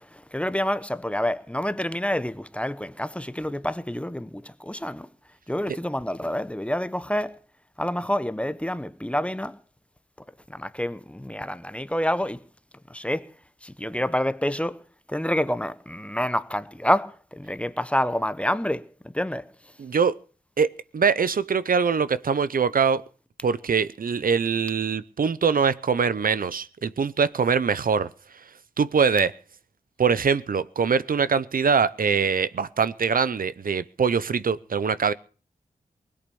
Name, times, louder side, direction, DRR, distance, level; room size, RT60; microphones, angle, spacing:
voice 1, 0.3-5.1 5.5-7.4 7.8-9.6 10.5-12.4 12.9-13.3 13.6-14.8 15.1-18.9 19.1-19.5, left 1 dB, 10° left, 0.8 m, -27 dB
voice 2, 19.8-20.2 20.6-23.0 23.4-28.1 28.8-29.3 30.0-35.1, right 6 dB, 65° right, 0.6 m, -23 dB
20.0 x 8.5 x 6.9 m
wide cardioid pair, 120°, 16 cm